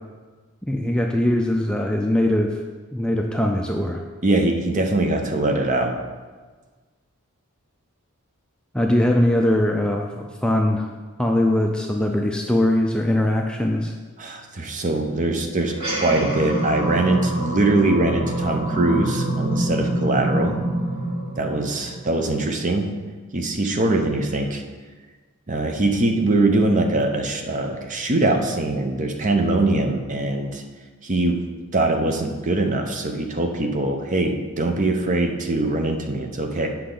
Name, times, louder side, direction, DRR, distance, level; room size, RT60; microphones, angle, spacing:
voice 1, 0.6-2.6 2.9-4.0 8.7-10.9 11.2-13.9, left 1 dB, 5° left, 1 dB, 0.3 m, -21 dB
voice 2, 4.2-5.9 14.2-20.6 21.4-22.9 23.3-24.6 25.5-30.6 31.0-31.4 31.7-36.7, right 2 dB, 35° right, 4 dB, 0.7 m, -22 dB
sound 1, 15.7-22.4, right 1 dB, 70° right, 2.2 m, -26 dB
8.4 x 5.8 x 3.9 m, 1.4 s
head